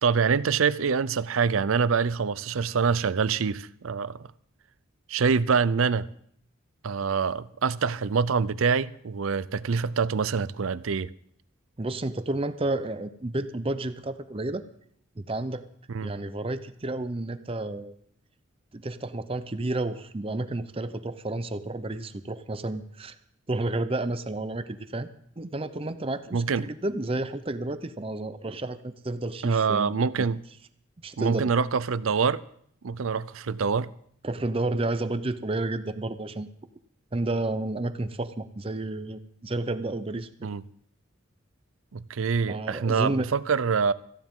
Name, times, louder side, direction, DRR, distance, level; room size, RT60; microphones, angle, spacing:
voice 1, 0.0-4.3 5.1-6.1 6.8-11.1 15.9-16.1 26.3-26.7 29.4-30.4 31.2-32.4 32.8-33.9 40.4-40.6 41.9-43.9, right 5 dB, 85° right, 0.5 m, -25 dB
voice 2, 11.8-14.6 15.2-15.6 16.0-17.9 18.7-23.1 23.5-25.1 25.4-30.3 31.0-31.5 34.2-36.5 37.1-40.5 42.5-43.3, right 2 dB, 30° right, 0.6 m, -31 dB
17.5 x 15.0 x 3.7 m
head